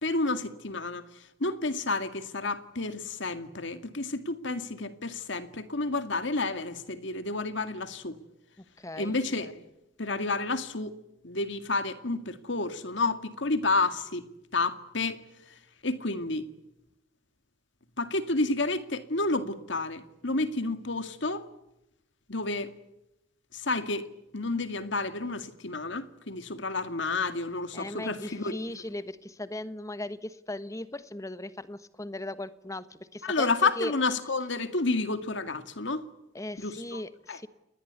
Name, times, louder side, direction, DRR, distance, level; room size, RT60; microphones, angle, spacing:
voice 1, 0.0-8.2 9.0-9.6 10.0-10.9 11.2-14.2 14.5-15.2 15.8-16.5 18.0-21.4 22.3-22.7 23.5-24.1 24.3-28.6 33.2-36.0 36.6-37.0 37.3-37.4, left 3 dB, 60° left, 2.1 m, -30 dB
voice 2, 8.8-9.2 27.7-33.9 36.3-37.5, left 1 dB, 15° left, 1.2 m, -38 dB
29.0 x 20.5 x 8.3 m
head